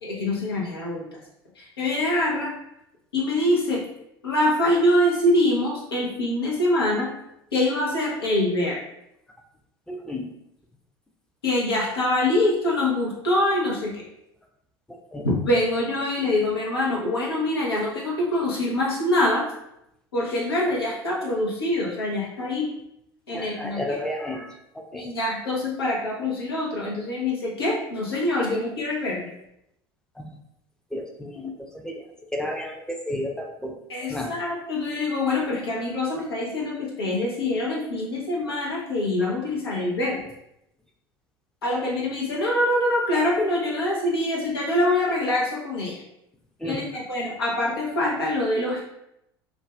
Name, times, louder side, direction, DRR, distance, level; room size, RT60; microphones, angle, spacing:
voice 1, 0.0-1.2 1.6-2.5 3.1-3.8 4.2-7.1 7.5-8.8 11.4-14.0 15.2-19.5 20.1-22.7 23.3-24.0 24.9-29.3 33.9-40.2 41.6-46.0 46.6-48.8, left 1 dB, 85° left, -4 dB, 0.8 m, -24 dB
voice 2, 9.9-10.3 14.9-15.3 23.3-24.5 24.8-25.0 28.3-28.5 30.2-30.3 30.9-32.0 32.3-33.7 34.1-34.3 46.6-46.8, left 1 dB, 5° left, 1 dB, 0.5 m, -32 dB
2.5 x 2.3 x 3.2 m, 0.81 s
figure-of-eight pair, 70°, 12 cm